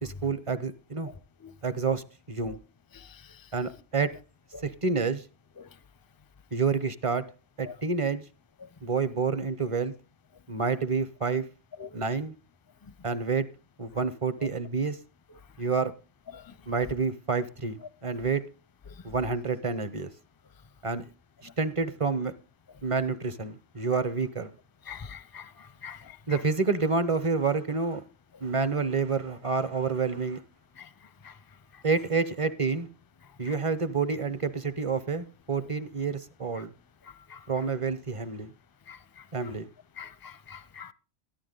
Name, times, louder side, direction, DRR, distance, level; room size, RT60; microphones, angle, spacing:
voice 1, 0.0-1.1 1.6-2.6 3.5-4.1 4.6-5.2 6.5-7.2 7.6-8.2 8.8-9.9 10.5-11.5 11.9-12.3 13.0-13.5 13.8-15.0 15.6-15.9 16.7-18.4 19.0-20.1 20.8-21.0 21.6-22.3 22.8-24.5 26.3-28.0 28.4-30.4 31.8-32.9 33.4-36.7 37.5-38.5 39.3-39.7, right 4 dB, 35° right, 0.8 m, -28 dB
voice 2, 24.9-25.5 25.8-26.0 37.3-37.4 38.9-39.0 40.0-40.9, left 7 dB, 25° left, 0.5 m, -42 dB
14.0 x 11.5 x 3.8 m
omnidirectional pair, 1.1 m